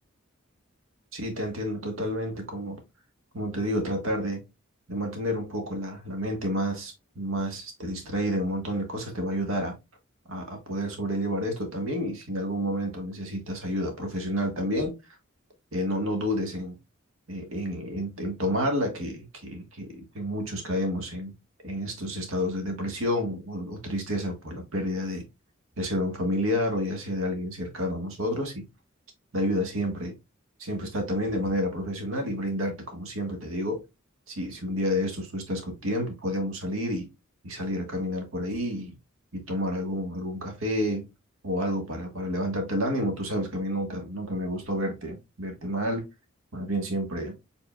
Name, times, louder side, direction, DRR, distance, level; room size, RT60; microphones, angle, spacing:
voice 1, 1.1-2.8 3.3-4.4 4.9-9.8 10.3-14.9 15.7-16.7 17.3-21.3 21.6-25.2 25.8-28.7 29.3-30.2 30.6-33.8 34.3-37.1 37.4-38.9 39.3-41.1 41.4-46.1 46.5-47.3, equal, 80° right, 1.3 m, -30 dB
4.7 x 3.6 x 2.2 m
head